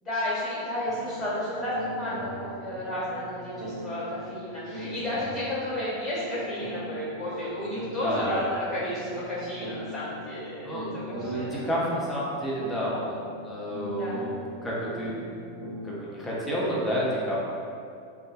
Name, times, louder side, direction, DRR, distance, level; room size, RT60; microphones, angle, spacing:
voice 1, 0.0-11.7 14.0-14.2, left 1 dB, 25° left, -10 dB, 1.4 m, -32 dB
sound 1, 0.8-16.0, equal, 75° right, 0.5 m, -40 dB
voice 2, 8.0-8.3 10.6-13.2 13.4-14.3 14.6-15.2 15.8-17.4, equal, 10° left, -7 dB, 0.6 m, -30 dB
2.5 x 2.2 x 2.4 m, 2.4 s
figure-of-eight pair, 90°, 0 cm